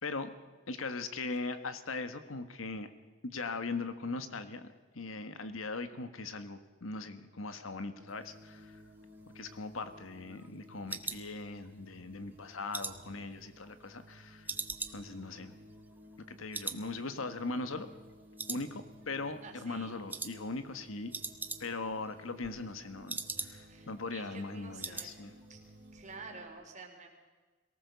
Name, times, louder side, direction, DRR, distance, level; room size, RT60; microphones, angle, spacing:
voice 1, 0.0-0.3 0.7-2.9 3.2-4.7 4.9-8.7 9.3-14.5 14.9-15.5 16.3-17.9 18.5-21.1 21.6-25.3, left 3 dB, 90° left, 9 dB, 1.5 m, -40 dB
sound 1, 8.0-26.5, equal, 65° right, 3.6 m, -56 dB
sound 2, 9.2-11.9 12.3-14.1 14.5-16.3 16.5-16.9 17.1-17.2 17.7-18.1 18.4-19.2 19.4-19.7 20.1-20.4 20.7-20.8 21.0-21.9 22.2-23.8 24.1-24.2 24.5-25.1 25.4-25.7 26.0-26.1, right 3 dB, 10° right, 1.0 m, -42 dB
voice 2, 19.4-19.9 23.7-25.1 25.5-25.6 25.9-27.1, right 4 dB, 35° right, 2 dB, 3.7 m, -49 dB
22.5 x 18.5 x 7.0 m, 1.3 s
head